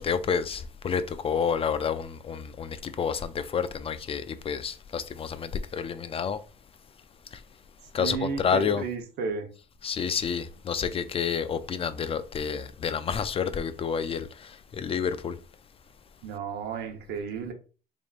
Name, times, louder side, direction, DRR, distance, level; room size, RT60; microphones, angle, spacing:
voice 1, 0.0-6.4 7.9-8.9 9.8-15.4, left 6 dB, 35° left, 0.4 m, -29 dB
voice 2, 7.8-9.5 16.2-17.5, right 5 dB, 75° right, 0.9 m, -33 dB
4.0 x 3.5 x 2.4 m
cardioid pair, 110°, 17 cm